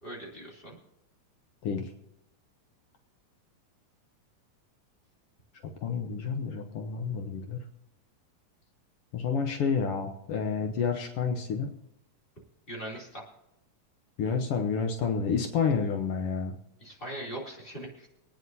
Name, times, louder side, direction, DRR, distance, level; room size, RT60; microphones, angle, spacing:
voice 1, 0.0-0.8 12.7-13.2 16.8-18.1, right 1 dB, 15° left, -3 dB, 2.9 m, -40 dB
voice 2, 5.8-7.6 9.1-11.7 14.2-16.6, left 5 dB, 85° left, 5 dB, 1.3 m, -29 dB
24.5 x 9.5 x 2.7 m, 0.84 s
omnidirectional pair, 3.9 m